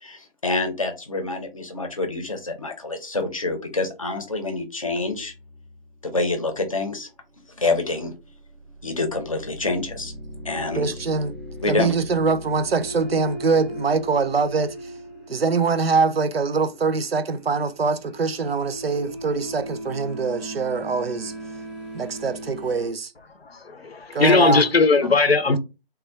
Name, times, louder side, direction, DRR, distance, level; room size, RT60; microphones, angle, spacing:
voice 1, 0.0-5.3 6.0-7.1 7.6-8.1 8.8-10.1 10.4-10.9 11.6-11.9, left 3 dB, 35° left, 0.7 m, -27 dB
sound 1, 5.1-5.9 8.2-22.9, right 1 dB, 10° right, 0.8 m, -38 dB
voice 2, 10.7-11.4 11.7-14.9 15.3-21.3 21.9-23.1 24.1-24.6, right 4 dB, 75° right, 0.5 m, -23 dB
voice 3, 23.2-25.6, left 4 dB, 80° left, 0.7 m, -19 dB
3.5 x 2.3 x 3.2 m
figure-of-eight pair, 155°, 30 cm